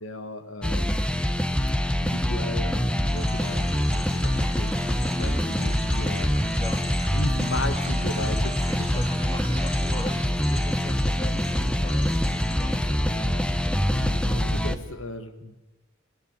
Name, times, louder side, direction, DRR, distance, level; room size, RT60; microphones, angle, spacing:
voice 1, 0.0-1.1 2.0-4.7 5.1-6.3 7.1-8.9 13.1-13.4 13.9-15.6, left 2 dB, 70° left, 10 dB, 1.8 m, -35 dB
sound 1, 0.6-14.8, equal, 5° left, 1.2 m, -25 dB
sound 2, 3.1-12.8, left 3 dB, 50° left, 4.7 m, -44 dB
sound 3, 3.1-10.2, right 5 dB, 30° right, 3.0 m, -44 dB
voice 2, 5.1-5.5 6.5-6.9 8.5-13.3 13.6-13.9, left 1 dB, 25° left, 9 dB, 2.1 m, -40 dB
28.0 x 17.0 x 9.0 m, 1.1 s
head